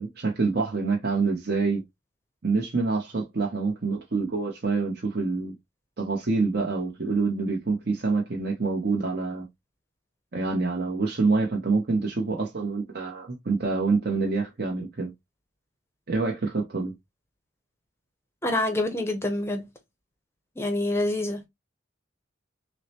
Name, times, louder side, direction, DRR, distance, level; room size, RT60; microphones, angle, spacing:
voice 1, 0.0-1.8 2.4-5.5 6.0-9.5 10.3-15.1 16.1-16.9, right 4 dB, 50° right, 0.8 m, -26 dB
voice 2, 18.4-19.6 20.6-21.5, left 1 dB, 15° left, 0.7 m, -26 dB
6.1 x 2.1 x 2.8 m
head